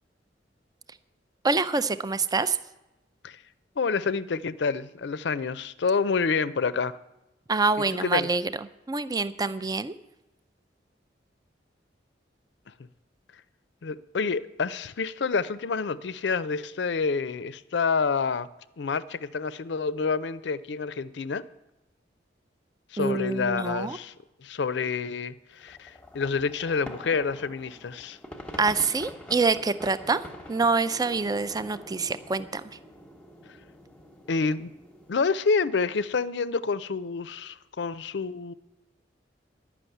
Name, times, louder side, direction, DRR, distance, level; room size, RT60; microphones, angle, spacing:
voice 1, 1.4-2.6 7.5-8.5 8.9-9.9 23.0-24.0 28.6-32.6, right 4 dB, 20° right, 14 dB, 0.4 m, -26 dB
voice 2, 3.8-7.0 7.9-8.3 13.8-18.5 18.8-21.5 22.9-28.2 34.3-34.7 35.1-38.5, left 5 dB, 65° left, 16 dB, 0.5 m, -28 dB
sound 1, 25.6-35.2, left 1 dB, 5° left, 1.0 m, -45 dB
11.0 x 6.1 x 9.1 m, 0.96 s
head